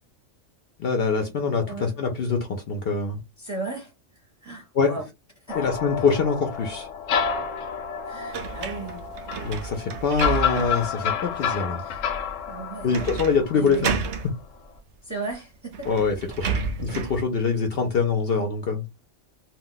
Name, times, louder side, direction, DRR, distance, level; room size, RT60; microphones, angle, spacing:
voice 1, 0.8-3.2 4.7-4.9 5.5-6.9 9.4-11.8 12.8-14.0 15.9-16.5 16.8-18.8, left 5 dB, 60° left, 0.7 m, -24 dB
voice 2, 3.4-5.0 5.5-5.7 8.1-9.1 11.2-11.3 11.8-12.0 12.5-13.1 13.5-14.1 15.0-15.9, right 3 dB, 15° right, 0.7 m, -36 dB
sound 1, 5.5-14.3, left 7 dB, 85° left, 1.0 m, -30 dB
sound 2, 8.3-10.9 11.4-11.5 12.9-13.4 13.6-14.3 15.3-15.4 15.7-17.2, right 5 dB, 70° right, 0.8 m, -31 dB
2.3 x 2.1 x 3.7 m
omnidirectional pair, 1.3 m